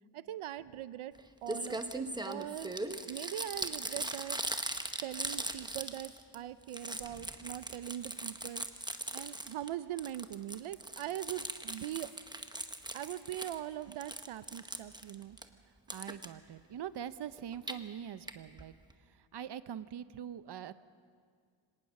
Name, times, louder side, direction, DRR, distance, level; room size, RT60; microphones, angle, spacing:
voice 1, 0.1-1.1 1.4-2.8 3.1-4.4 5.0-8.7 9.1-12.1 12.9-15.4, right 12 dB, 90° right, 15 dB, 0.6 m, -41 dB
Crumpling crinkling, 1.1-1.2 1.5-6.4 6.6-9.7 10.0-13.6 13.9-15.4 15.9-16.3 17.4-17.7 18.3-18.4 18.6-18.7 18.9-19.0, right 1 dB, 10° right, 0.9 m, -40 dB
voice 2, 15.9-18.7 19.1-20.7, right 9 dB, 55° right, 14 dB, 0.7 m, -43 dB
24.5 x 18.5 x 6.5 m, 2.1 s
wide cardioid pair, 125°, 48 cm